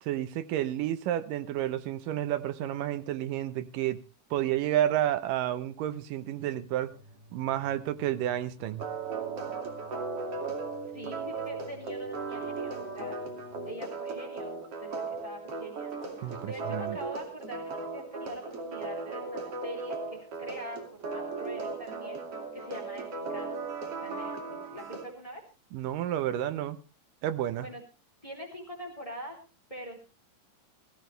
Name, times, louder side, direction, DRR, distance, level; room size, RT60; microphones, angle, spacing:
voice 1, 0.0-4.0 4.3-6.9 7.3-8.8 16.2-17.0 25.7-26.8 27.2-27.7, right 12 dB, 80° right, 12 dB, 2.6 m, -30 dB
sound 1, 6.8-13.7, right 1 dB, 20° right, 4.7 m, -54 dB
sound 2, 8.8-25.1, right 4 dB, 45° right, 3.4 m, -37 dB
voice 2, 10.9-13.2 13.6-15.9 16.2-22.2 22.5-25.4 27.6-27.8 28.2-29.4 29.7-30.1, equal, 10° left, 2 dB, 3.9 m, -44 dB
17.0 x 16.0 x 3.3 m, 0.32 s
omnidirectional pair, 3.8 m